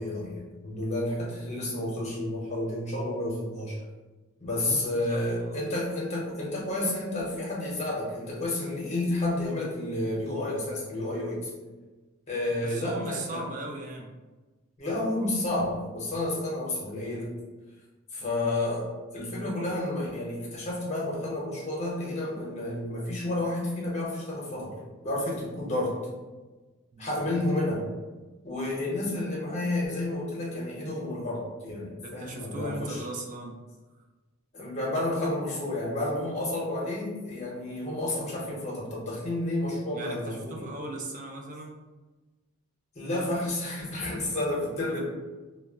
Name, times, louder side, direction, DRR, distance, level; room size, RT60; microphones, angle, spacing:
voice 1, 0.0-3.8 4.4-11.5 12.3-13.4 14.8-17.3 18.1-18.9 19.1-24.7 25.0-26.0 27.0-27.9 28.4-33.0 34.5-40.7 42.9-45.1, left 1 dB, 30° left, -3 dB, 0.7 m, -30 dB
voice 2, 4.6-5.2 5.4-5.6 12.5-14.1 18.2-18.4 26.9-27.4 32.0-33.6 39.9-41.8 44.9-45.1, right 2 dB, 35° right, 2 dB, 0.3 m, -38 dB
2.1 x 2.0 x 3.4 m, 1.2 s
head